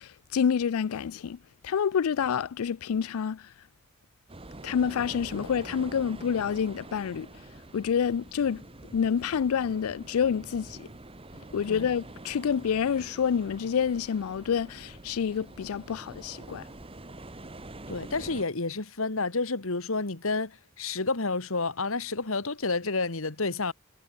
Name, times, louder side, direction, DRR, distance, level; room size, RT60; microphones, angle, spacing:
voice 1, 0.0-1.4 1.6-3.5 4.6-7.3 7.7-8.6 8.9-10.9 11.5-16.7, left 7 dB, 90° left, 0.4 m, -28 dB
sound 1, 4.3-18.4, right 2 dB, 25° right, 1.5 m, -46 dB
voice 2, 17.9-23.7, left 3 dB, 70° left, 1.8 m, -30 dB
head